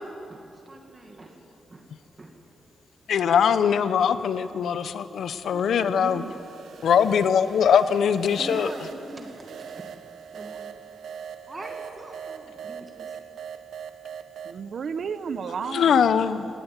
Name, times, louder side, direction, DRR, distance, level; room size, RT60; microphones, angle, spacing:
voice 1, 0.0-1.3 1.7-1.8 2.2-2.3 6.0-6.3 8.3-9.9 10.3-10.7 11.5-13.1 15.8-16.2, right 1 dB, 25° right, 3 dB, 2.0 m, -42 dB
voice 2, 3.1-6.2 6.8-8.7 15.7-16.5, left 7 dB, 75° left, 12 dB, 0.9 m, -21 dB
voice 3, 5.5-6.4 14.4-16.4, right 6 dB, 60° right, 13 dB, 0.9 m, -34 dB
sound 1, 5.5-14.6, right 7 dB, 85° right, 0.9 m, -41 dB
18.5 x 17.5 x 9.2 m, 2.7 s
wide cardioid pair, 140°, 0 cm